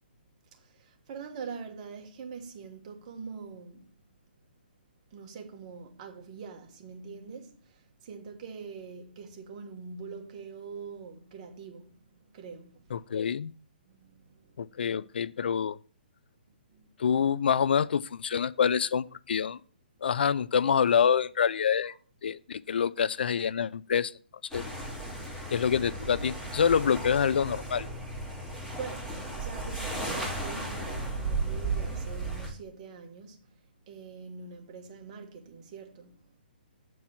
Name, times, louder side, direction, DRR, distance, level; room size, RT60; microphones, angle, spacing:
voice 1, 0.6-3.9 5.1-13.0 14.0-14.5 16.7-16.9 21.8-22.0 28.8-33.5 33.9-36.3, right 5 dB, 35° right, 1.4 m, -44 dB
voice 2, 12.9-13.5 14.6-15.8 17.0-19.6 20.0-21.9 22.2-24.1 24.5-24.6 25.5-27.9, left 7 dB, 75° left, 0.4 m, -26 dB
sound 1, 24.5-32.5, right 2 dB, 5° left, 3.7 m, -35 dB
8.2 x 4.6 x 5.7 m
hypercardioid pair, 155°, 6 cm